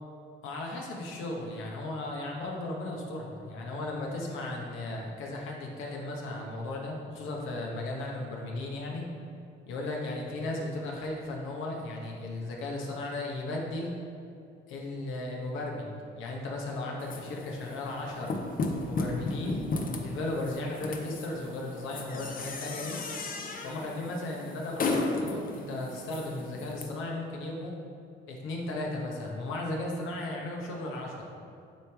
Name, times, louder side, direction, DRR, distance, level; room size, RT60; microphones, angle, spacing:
voice 1, 0.4-9.1 9.7-13.9 14.7-18.4 18.9-19.6 20.0-23.0 23.6-27.7 28.3-31.3, left 2 dB, 85° left, -1 dB, 1.0 m, -36 dB
sound 1, 17.0-26.8, left 3 dB, 45° left, 0.6 m, -35 dB
9.1 x 3.3 x 3.5 m, 2.5 s
cardioid pair, 90°, 20 cm